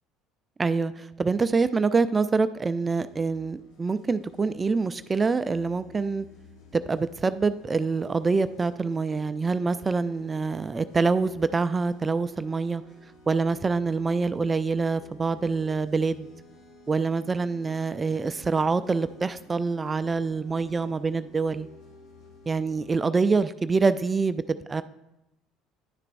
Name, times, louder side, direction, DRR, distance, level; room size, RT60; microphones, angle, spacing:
voice 1, 0.6-6.3 6.7-12.8 13.3-16.3 16.9-21.7 22.5-24.8, right 4 dB, 25° right, 13 dB, 0.3 m, -25 dB
sound 1, 3.0-23.0, left 2 dB, 70° left, 1.9 m, -53 dB
10.5 x 6.6 x 2.5 m, 0.91 s
hypercardioid pair, 65°, 0 cm